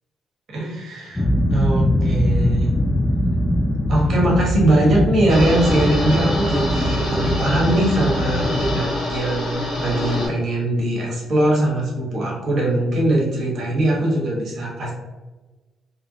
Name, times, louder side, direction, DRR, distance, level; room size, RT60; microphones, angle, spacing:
voice 1, 0.5-2.7 3.9-14.9, right 1 dB, 60° right, -3 dB, 1.1 m, -21 dB
sound 1, 1.2-8.8, left 1 dB, 15° left, 0.3 m, -22 dB
sound 2, 5.3-10.3, left 1 dB, 55° left, 1.3 m, -26 dB
2.7 x 2.4 x 2.7 m, 1.2 s
cardioid pair, 90°, 0 cm